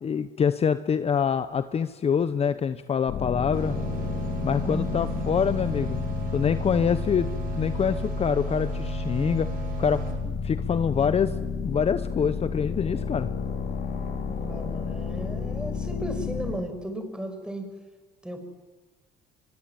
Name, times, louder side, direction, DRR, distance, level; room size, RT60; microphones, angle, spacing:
voice 1, 0.0-3.8 4.4-6.0 6.3-7.3 7.5-11.3 11.6-13.3, left 7 dB, 35° left, 12 dB, 1.0 m, -25 dB
sound 1, 3.1-16.6, left 5 dB, 65° left, 5.9 m, -31 dB
sound 2, 3.5-10.1, right 6 dB, 55° right, 8.0 m, -36 dB
voice 2, 4.6-5.3 14.3-17.7 18.2-18.4, equal, 5° right, 6 dB, 6.1 m, -35 dB
24.0 x 23.0 x 9.4 m, 1.3 s
cardioid pair, 110°, 17 cm